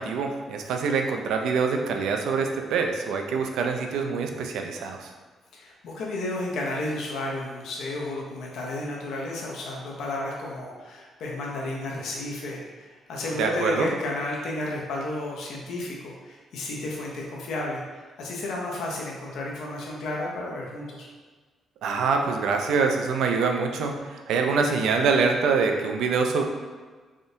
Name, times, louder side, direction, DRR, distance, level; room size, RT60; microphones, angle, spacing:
voice 1, 0.0-5.1 13.4-13.9 21.8-26.4, right 5 dB, 80° right, 3 dB, 0.3 m, -25 dB
voice 2, 5.5-21.1, left 2 dB, 70° left, -3 dB, 0.5 m, -32 dB
3.4 x 2.6 x 2.7 m, 1.4 s
cardioid pair, 165°, 0 cm